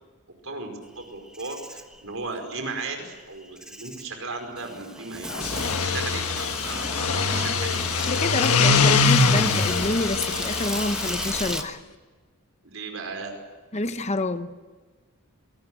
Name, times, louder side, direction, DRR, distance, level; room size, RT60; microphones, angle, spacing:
voice 1, 0.4-7.8 8.3-8.9 12.6-13.3, right 3 dB, 65° right, 4 dB, 5.1 m, -36 dB
Insect, 1.0-11.6, right 1 dB, 5° right, 1.3 m, -34 dB
sound 1, 5.3-11.6, left 4 dB, 90° left, 1.4 m, -23 dB
voice 2, 8.1-11.8 13.7-14.5, left 2 dB, 30° left, 10 dB, 0.9 m, -28 dB
27.0 x 19.0 x 7.7 m, 1.4 s
head